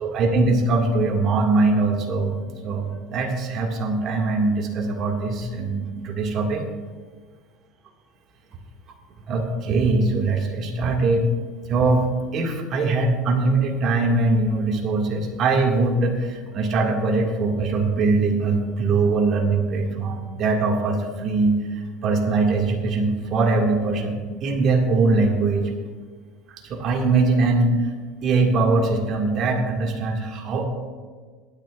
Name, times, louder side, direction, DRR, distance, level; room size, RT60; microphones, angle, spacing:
voice 1, 0.0-2.4 2.6-6.6 9.3-11.3 11.7-12.1 12.3-25.7 26.6-27.9 28.2-30.6, right 3 dB, 50° right, 1 dB, 2.0 m, -22 dB
21.5 x 9.7 x 2.5 m, 1.5 s
supercardioid pair, 115°, 0 cm